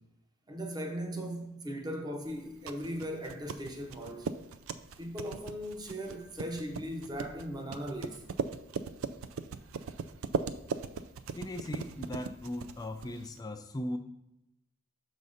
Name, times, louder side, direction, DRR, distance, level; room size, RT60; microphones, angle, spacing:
voice 1, 0.5-4.3 5.0-8.2, equal, 20° right, 0.7 m, -38 dB
sound 1, 2.3-13.4, right 5 dB, 85° right, 0.4 m, -39 dB
voice 2, 11.4-14.0, left 1 dB, 20° left, 0.4 m, -38 dB
6.6 x 4.1 x 5.0 m
head